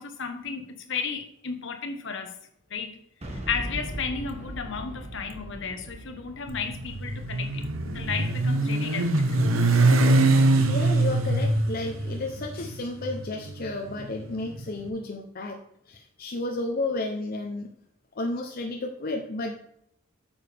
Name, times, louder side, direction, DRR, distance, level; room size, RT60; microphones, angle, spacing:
voice 1, 0.0-2.3 2.7-3.0 3.5-9.4, left 5 dB, 65° left, 1.2 m, -33 dB
Boom, 3.2-9.1, right 1 dB, 30° right, 1.7 m, -39 dB
Motorcycle, 6.5-14.7, right 2 dB, 80° right, 0.9 m, -23 dB
voice 2, 10.7-17.7 18.1-19.6, left 2 dB, 45° left, 0.7 m, -32 dB
8.9 x 6.9 x 3.5 m
head